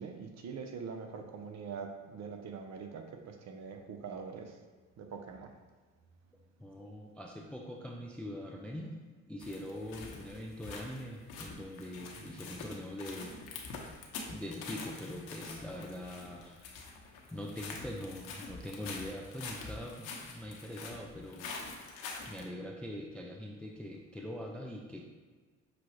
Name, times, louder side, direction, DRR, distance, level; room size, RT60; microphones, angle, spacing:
voice 1, 0.0-4.6 5.0-5.5, right 5 dB, 40° right, 4 dB, 0.7 m, -43 dB
voice 2, 6.6-9.0 9.3-13.3 14.3-16.6 17.3-21.5 22.3-25.0, left 1 dB, 5° left, 1 dB, 0.4 m, -43 dB
sound 1, 9.4-22.4, left 4 dB, 60° left, 0.9 m, -46 dB
5.8 x 2.4 x 3.1 m, 1.4 s
hypercardioid pair, 55°, 40 cm